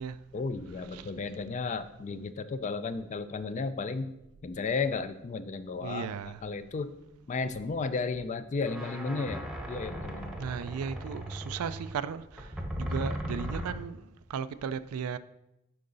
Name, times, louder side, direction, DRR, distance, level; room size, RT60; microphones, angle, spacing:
voice 1, 0.3-4.1 4.4-6.1 6.4-7.0 7.3-10.4, left 4 dB, 35° left, 0.3 m, -33 dB
voice 2, 5.8-6.4 10.4-15.2, right 7 dB, 90° right, 0.4 m, -36 dB
sound 1, 8.2-8.3 8.6-13.7, equal, 5° right, 0.9 m, -37 dB
10.5 x 3.8 x 3.9 m
head